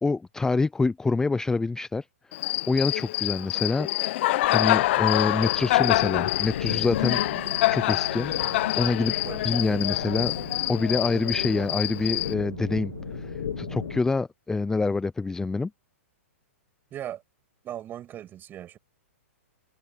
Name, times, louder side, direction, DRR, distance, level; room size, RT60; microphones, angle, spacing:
voice 1, 0.0-3.9 4.5-7.2 7.7-9.1 9.4-10.3 10.7-15.7, left 3 dB, 5° left, 0.6 m, -26 dB
Cricket, 2.3-12.3, left 17 dB, 50° left, 1.0 m, -26 dB
sound 1, 4.4-14.1, left 10 dB, 70° left, 1.6 m, -37 dB
sound 2, 7.0-14.0, right 6 dB, 90° right, 3.3 m, -41 dB
voice 2, 16.9-17.2 17.6-18.8, right 11 dB, 25° right, 7.9 m, -38 dB
hypercardioid pair, 125°, 8 cm